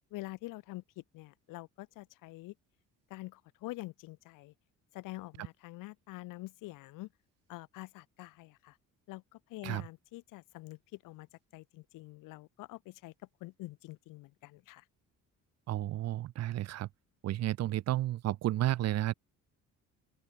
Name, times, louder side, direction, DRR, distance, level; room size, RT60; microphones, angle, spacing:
voice 1, 0.1-2.5 3.1-4.5 4.9-7.1 7.5-8.8 9.1-13.1 13.4-14.8, left 20 dB, 90° left, 0.7 m, -46 dB
voice 2, 15.7-16.9 17.2-19.1, right 14 dB, 55° right, 0.7 m, -32 dB
open air
cardioid pair, 145°, 31 cm